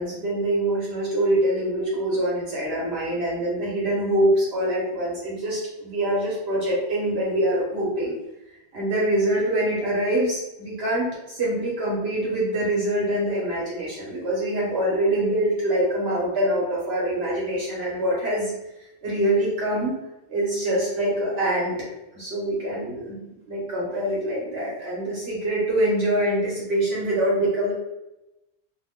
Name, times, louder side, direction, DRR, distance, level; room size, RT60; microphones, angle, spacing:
voice 1, 0.0-8.2 8.7-18.5 19.0-19.9 20.3-27.7, right 1 dB, 65° right, -5 dB, 1.1 m, -24 dB
3.0 x 2.1 x 3.5 m, 0.95 s
omnidirectional pair, 1.1 m